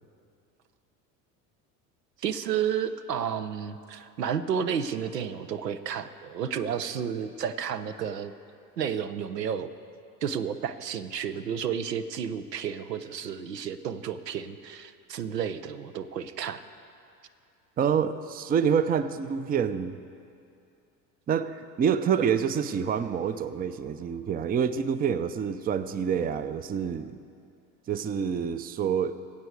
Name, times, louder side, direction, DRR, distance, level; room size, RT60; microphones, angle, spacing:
voice 1, 2.2-8.3 8.8-9.7 10.2-16.6 22.2-22.3, right 8 dB, 90° right, 11 dB, 0.7 m, -31 dB
voice 2, 17.8-20.0 21.3-27.2 27.9-29.2, right 7 dB, 20° right, 12 dB, 0.5 m, -27 dB
24.0 x 8.2 x 4.7 m, 2.5 s
hypercardioid pair, 70°, 48 cm